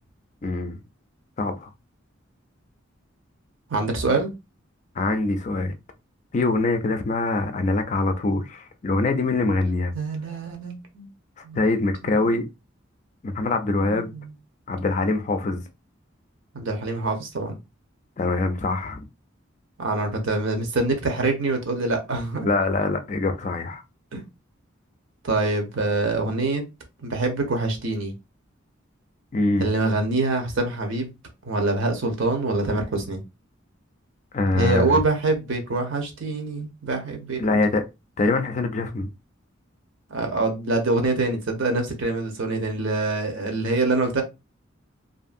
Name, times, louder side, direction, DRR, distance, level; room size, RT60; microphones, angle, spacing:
voice 1, 0.4-0.8 1.4-1.7 5.0-5.7 6.3-9.9 11.6-12.4 13.2-14.1 14.7-15.6 18.2-19.0 22.4-23.8 29.3-29.7 34.3-35.0 37.4-37.8 38.2-39.1, left 3 dB, 35° left, 0.4 m, -24 dB
voice 2, 3.7-4.3 9.9-11.1 11.4-11.7 12.0-12.4 13.8-14.3 15.1-15.2 16.5-17.6 19.8-22.5 24.1-24.2 25.2-26.6 27.0-28.1 29.6-31.1 31.4-33.2 34.5-37.6 40.1-44.2, right 2 dB, 75° right, 0.8 m, -25 dB
2.6 x 2.6 x 2.5 m
head